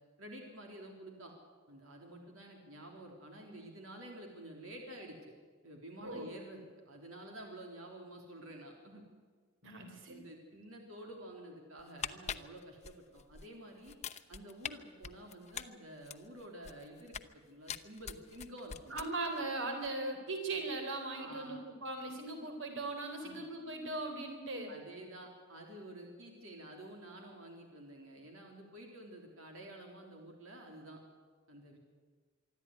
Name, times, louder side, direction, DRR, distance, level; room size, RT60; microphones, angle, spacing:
voice 1, 0.2-1.3 1.7-5.2 5.6-9.0 10.1-14.0 14.3-18.9 21.1-21.6 23.2-23.4 24.7-31.0 31.5-31.8, right 1 dB, 80° right, 1 dB, 3.6 m, -50 dB
voice 2, 9.6-10.2 18.9-24.7, right 2 dB, 65° right, 4 dB, 3.9 m, -39 dB
sound 1, 11.8-13.5 13.8-14.7 15.0-17.3 17.7-19.4 19.7-19.9, left 7 dB, 35° left, 0.8 m, -43 dB
24.5 x 13.0 x 9.7 m, 1.5 s
head